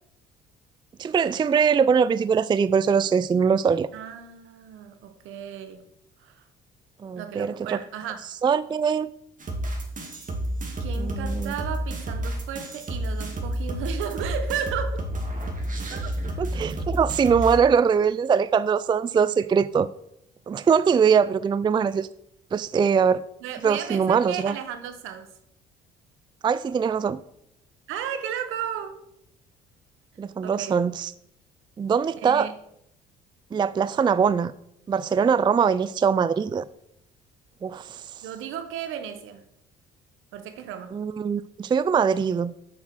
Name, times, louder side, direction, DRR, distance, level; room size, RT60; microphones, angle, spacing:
voice 1, 1.0-3.9 7.0-7.8 8.4-9.1 11.0-11.5 16.4-19.9 20.5-22.1 22.5-23.2 23.6-24.6 26.4-27.2 30.2-31.1 31.8-32.5 33.5-34.5 34.9-36.6 37.6-38.0 40.9-42.5, right 6 dB, 20° right, 0.3 m, -22 dB
voice 2, 3.9-5.8 6.2-6.4 7.2-8.2 10.8-15.1 15.9-16.1 23.4-25.3 27.9-29.0 30.4-30.8 32.2-32.5 35.2-35.3 38.2-39.4 40.3-41.0, right 8 dB, 70° right, 1.1 m, -34 dB
sound 1, 9.4-17.6, right 1 dB, 40° right, 2.3 m, -30 dB
7.5 x 5.9 x 6.1 m
supercardioid pair, 65°, 21 cm